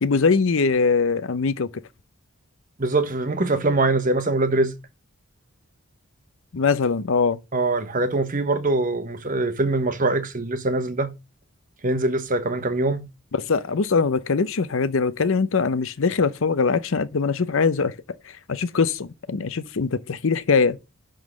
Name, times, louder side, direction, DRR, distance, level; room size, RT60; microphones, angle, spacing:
voice 1, 0.0-1.7 6.5-7.4 13.4-17.9 18.3-20.8, left 4 dB, 65° left, 0.6 m, -22 dB
voice 2, 2.8-4.7 7.5-11.1 11.8-13.1, right 2 dB, 40° right, 1.1 m, -23 dB
11.0 x 3.8 x 6.4 m
head